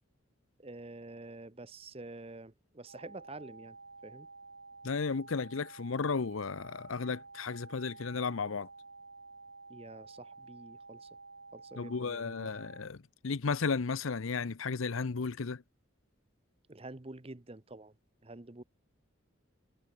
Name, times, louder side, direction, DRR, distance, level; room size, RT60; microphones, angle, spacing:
voice 1, 0.6-3.8 4.0-4.3 9.7-11.1 11.5-12.5 16.7-18.0 18.2-18.6, right 2 dB, 30° right, 0.9 m, -48 dB
sound 1, 2.9-12.9, right 3 dB, 70° right, 7.9 m, -52 dB
voice 2, 4.8-8.7 11.8-15.6, left 4 dB, 80° left, 0.7 m, -34 dB
head